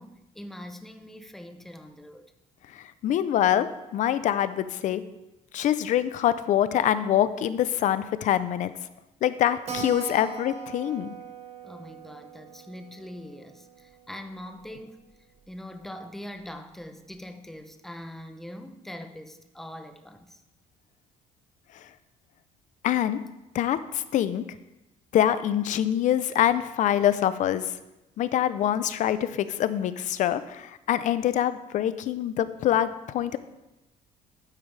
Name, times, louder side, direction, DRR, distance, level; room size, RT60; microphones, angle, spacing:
voice 1, 0.0-2.3 11.6-15.1 15.5-20.4, left 1 dB, ahead, 0.7 m, -42 dB
voice 2, 2.7-5.0 5.5-8.7 9.2-11.1 22.8-23.2 23.5-24.4 25.1-27.6 28.2-33.4, left 11 dB, 55° left, 0.6 m, -25 dB
Keyboard (musical), 9.7-14.7 15.0-15.1 15.4-15.5 15.7-15.8 16.4-16.7, right 5 dB, 45° right, 1.7 m, -41 dB
12.5 x 9.2 x 3.3 m
cardioid pair, 145°, 15 cm